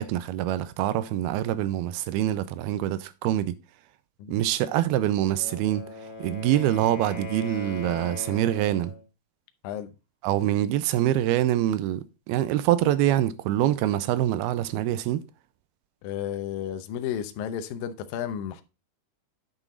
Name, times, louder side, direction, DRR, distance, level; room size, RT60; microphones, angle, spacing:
voice 1, 0.0-3.6 4.3-5.9 6.2-8.9 10.2-15.2, right 13 dB, 85° right, 2.5 m, -25 dB
Wind instrument woodwind instrument, 5.2-9.0, left 3 dB, 20° left, 1.8 m, -39 dB
voice 2, 16.0-18.6, left 9 dB, 75° left, 2.3 m, -32 dB
9.0 x 6.1 x 3.8 m
omnidirectional pair, 4.5 m